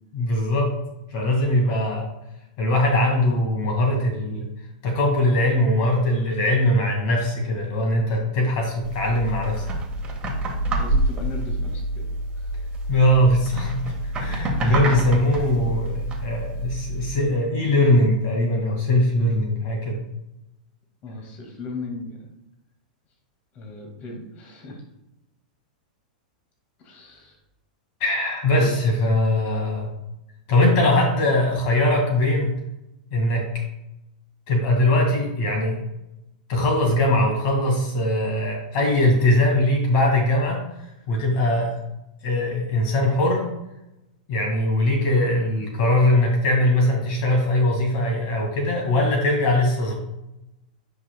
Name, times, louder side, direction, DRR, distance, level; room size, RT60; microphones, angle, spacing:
voice 1, 0.1-0.7 1.1-2.1 2.6-4.5 4.8-9.7 12.9-13.8 14.2-20.0 28.0-29.9 30.5-32.6 33.1-33.5 34.5-35.8 36.5-40.6 41.1-41.7 42.2-43.5 44.3-49.9, left 1 dB, 55° left, 0 dB, 1.9 m, -21 dB
sound 1, 8.8-17.1, right 1 dB, 20° right, 1.4 m, -27 dB
voice 2, 10.7-12.1 12.4-12.5 14.8-15.0 21.0-22.2 23.5-24.8 26.8-27.4 28.5-28.7, left 2 dB, 35° left, 0 dB, 2.0 m, -37 dB
9.4 x 5.5 x 2.2 m, 0.89 s
hypercardioid pair, 120°, 4 cm